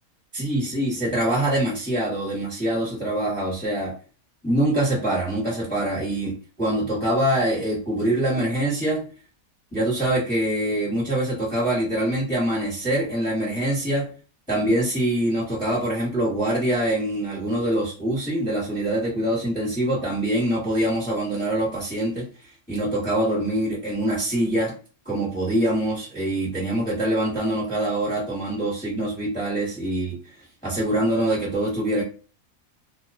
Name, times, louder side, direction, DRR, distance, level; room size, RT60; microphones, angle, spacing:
voice 1, 0.3-4.0 4.4-9.0 9.7-14.1 14.5-22.3 22.7-24.7 25.0-30.2 30.6-32.0, right 1 dB, 5° left, -7 dB, 0.9 m, -24 dB
2.3 x 2.2 x 2.5 m, 0.36 s
omnidirectional pair, 1.5 m